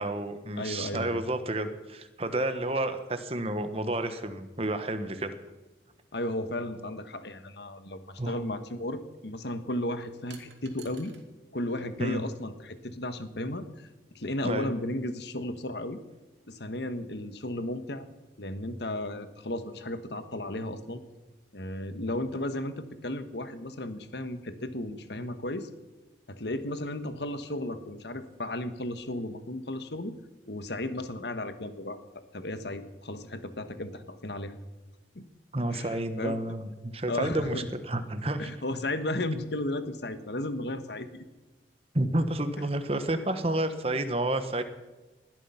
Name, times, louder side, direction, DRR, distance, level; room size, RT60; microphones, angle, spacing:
voice 1, 0.0-5.3 8.2-8.4 12.0-12.2 14.4-14.7 35.5-38.5 41.9-44.6, right 1 dB, 35° right, 9 dB, 1.3 m, -30 dB
voice 2, 0.6-1.2 6.1-11.1 11.5-13.9 14.1-16.0 16.5-18.1 18.4-21.0 21.5-25.7 26.3-30.1 30.5-32.0 32.3-34.5 35.1-35.3 35.7-36.4 37.1-37.7 38.4-41.2 42.6-42.7, left 1 dB, 70° left, 10 dB, 1.4 m, -34 dB
sound 1, 10.3-11.3 11.6-12.5, right 8 dB, 80° right, 2.5 m, -53 dB
20.0 x 12.5 x 5.8 m, 1.2 s
head